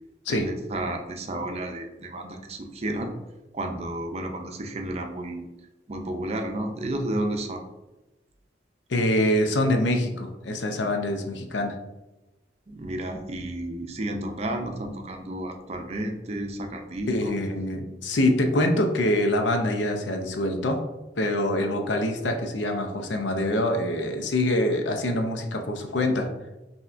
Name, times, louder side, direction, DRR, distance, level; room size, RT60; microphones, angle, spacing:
voice 1, 0.3-3.1 3.5-5.5 5.9-7.6 12.7-17.4, right 1 dB, 35° right, 4 dB, 0.5 m, -32 dB
voice 2, 8.9-11.7 17.1-20.8 21.2-26.3, left 1 dB, 90° left, 4 dB, 0.6 m, -25 dB
5.5 x 2.8 x 2.5 m, 1.0 s
head